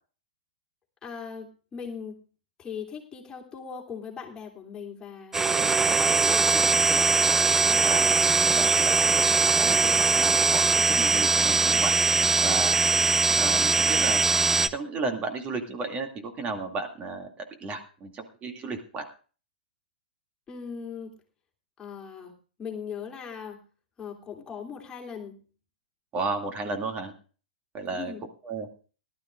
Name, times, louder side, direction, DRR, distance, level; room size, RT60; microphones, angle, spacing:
voice 1, 1.0-2.2 2.6-7.1 20.5-21.2 21.8-22.3 22.6-23.6 24.0-25.4 27.9-28.2, left 6 dB, 15° left, -1 dB, 3.1 m, -39 dB
sound 1, 5.3-14.7, right 4 dB, 10° right, 0.5 m, -21 dB
voice 2, 7.7-12.0 12.4-12.8 13.4-14.2 14.7-17.3 17.6-19.1 26.1-27.1 27.7-28.1 28.4-28.7, right 3 dB, 25° right, 5 dB, 2.4 m, -34 dB
19.0 x 12.5 x 2.5 m, 0.37 s
hypercardioid pair, 115°, 5 cm